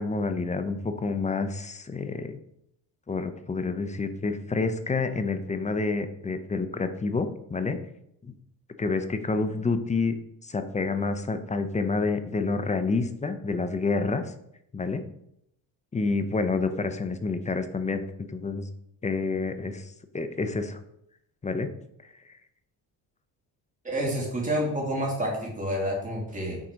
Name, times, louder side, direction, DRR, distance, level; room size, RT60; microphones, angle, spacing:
voice 1, 0.0-2.4 3.1-7.8 8.2-8.3 8.8-10.1 10.4-14.2 14.7-15.0 15.9-18.7 19.0-19.8 20.1-20.8 21.4-21.7, left 3 dB, 20° left, 9 dB, 0.6 m, -28 dB
voice 2, 23.8-26.6, equal, 20° right, -3 dB, 2.8 m, -29 dB
6.2 x 4.1 x 5.0 m, 0.76 s
cardioid pair, 115°, 40 cm